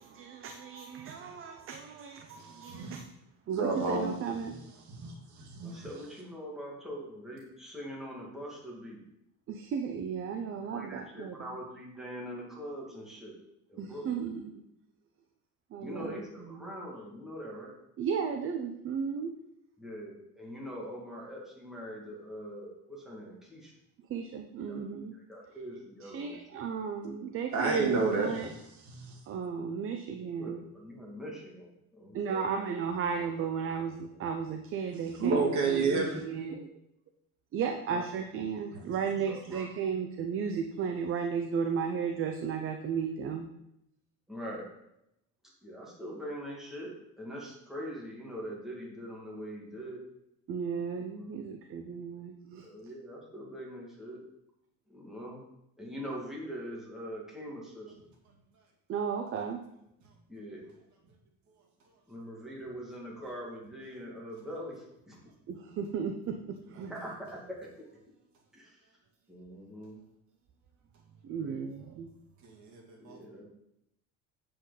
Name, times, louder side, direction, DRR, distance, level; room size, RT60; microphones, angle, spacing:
voice 1, 0.1-3.1 3.5-4.6 9.5-11.5 13.8-14.6 15.7-16.2 16.5-16.7 18.0-19.3 24.1-25.2 26.0-28.5 29.3-30.6 32.1-36.7 37.5-43.5 50.5-52.6 58.9-59.6 65.5-66.9 71.2-72.1, right 6 dB, 40° right, 5 dB, 0.6 m, -34 dB
voice 2, 2.4-3.0 3.5-4.1 4.9-5.9 27.5-28.3 28.9-29.2 35.2-36.2 72.4-73.2, right 4 dB, 60° right, -1 dB, 2.3 m, -30 dB
voice 3, 5.6-9.0 10.5-13.4 13.7-14.2 15.8-17.7 19.8-23.7 24.7-24.8 25.3-26.5 30.4-32.5 37.9-38.0 39.3-39.7 44.3-44.7 45.6-50.1 51.1-51.5 52.6-54.2 54.9-55.4 55.8-57.9 60.3-60.7 62.1-65.2 66.9-67.7 68.5-68.8 69.3-70.0 71.4-71.7 73.0-73.4, equal, ahead, -5 dB, 2.2 m, -43 dB
8.0 x 7.8 x 4.1 m, 0.82 s
cardioid pair, 165°, 33 cm